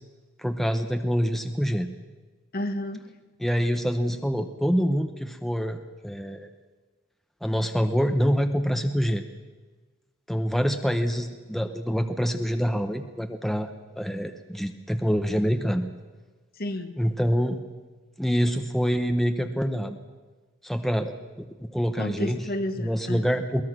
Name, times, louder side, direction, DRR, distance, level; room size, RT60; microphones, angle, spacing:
voice 1, 0.4-1.9 3.4-5.8 6.0-6.5 7.4-9.2 10.3-13.7 14.0-15.9 17.0-17.6 18.2-20.0 20.6-21.1 21.7-22.4 22.8-23.6, equal, ahead, 6 dB, 0.9 m, -25 dB
voice 2, 2.5-3.1 16.6-16.9 22.0-23.2, left 1 dB, 45° left, 8 dB, 1.3 m, -31 dB
21.5 x 20.0 x 6.2 m, 1.3 s
head